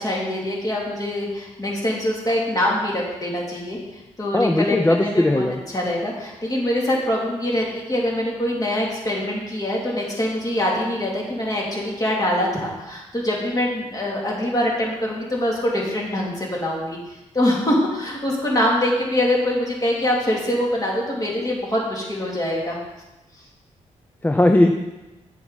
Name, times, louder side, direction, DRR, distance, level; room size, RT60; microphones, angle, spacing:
voice 1, 0.0-3.8 4.2-17.0 17.3-22.8, left 1 dB, 30° left, -3 dB, 2.8 m, -24 dB
voice 2, 4.3-5.6 24.2-24.7, left 1 dB, 15° left, 4 dB, 0.6 m, -18 dB
8.5 x 7.2 x 4.1 m, 1.0 s
cardioid pair, 75°, 12 cm